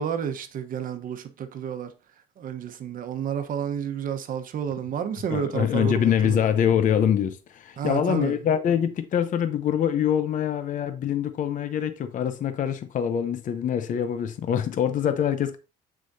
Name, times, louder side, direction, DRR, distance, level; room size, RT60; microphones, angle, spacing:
voice 1, 0.0-1.9 2.4-6.4 7.8-8.4, right 8 dB, 55° right, 1.1 m, -30 dB
voice 2, 5.3-15.6, left 9 dB, 50° left, 0.8 m, -24 dB
7.7 x 6.1 x 2.7 m
cardioid pair, 110°, 17 cm